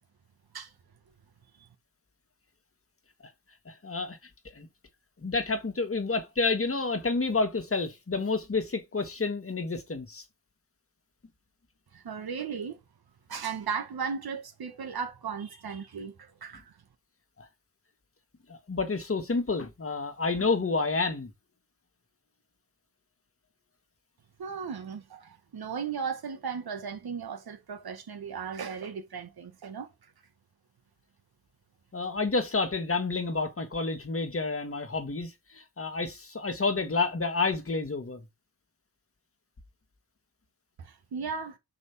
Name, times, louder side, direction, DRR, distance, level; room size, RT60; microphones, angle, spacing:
voice 1, 3.7-4.2 4.6-4.7 5.2-10.2 17.4-17.5 18.5-21.3 31.9-38.2, left 3 dB, 35° left, 1.7 m, -29 dB
voice 2, 11.9-12.8 13.3-16.7 24.4-29.9 40.8-41.6, right 6 dB, 70° right, 1.7 m, -36 dB
6.3 x 5.1 x 3.5 m
wide cardioid pair, 95°, 38 cm